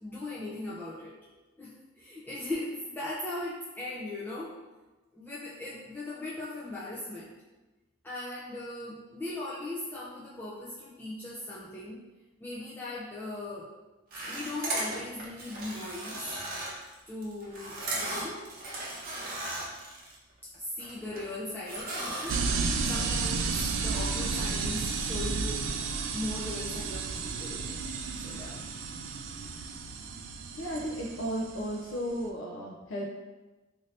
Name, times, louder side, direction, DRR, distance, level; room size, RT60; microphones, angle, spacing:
voice 1, 0.0-1.2 1.6-4.5 5.1-7.3 8.0-12.0 12.4-13.7 14.3-16.3 17.1-18.5 20.6-22.4 22.9-25.7 26.1-27.6 28.2-28.7, left 2 dB, 10° left, -8 dB, 0.3 m, -39 dB
sound 1, 14.1-20.1 20.5-21.3 21.7-22.6, right 1 dB, 45° right, 0.7 m, -36 dB
sound 2, 22.3-32.2, right 4 dB, 75° right, 0.3 m, -32 dB
voice 2, 30.6-33.1, equal, 80° left, -2 dB, 0.4 m, -34 dB
2.6 x 2.6 x 3.2 m, 1.1 s
head